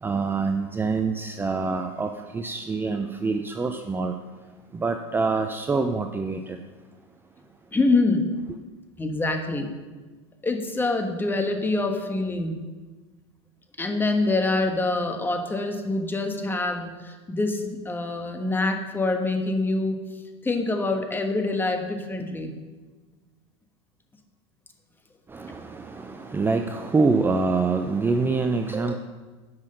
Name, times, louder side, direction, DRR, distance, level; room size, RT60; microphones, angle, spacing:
voice 1, 0.0-4.1 4.7-6.6 25.3-29.0, right 4 dB, 15° right, 6 dB, 0.5 m, -25 dB
voice 2, 7.7-8.2 9.0-9.7 10.4-12.6 13.8-20.0 20.4-22.5, left 2 dB, 15° left, 4 dB, 1.3 m, -25 dB
9.5 x 6.3 x 6.6 m, 1.3 s
hypercardioid pair, 105°, 16 cm